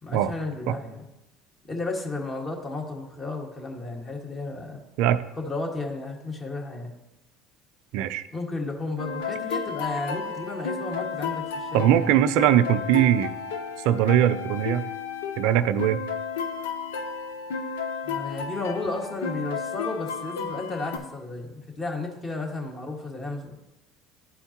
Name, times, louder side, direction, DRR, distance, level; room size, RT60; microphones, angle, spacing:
voice 1, 0.0-1.1 1.7-4.8 5.4-6.9 8.3-12.1 18.0-23.5, left 3 dB, 30° left, 0 dB, 1.7 m, -33 dB
voice 2, 7.9-8.2 11.7-13.3 13.8-14.9 15.4-16.0, right 11 dB, 70° right, 12 dB, 0.4 m, -21 dB
sound 1, 9.0-21.0, left 5 dB, 80° left, 0.6 m, -33 dB
11.5 x 4.4 x 2.9 m, 0.95 s
hypercardioid pair, 80°, 0 cm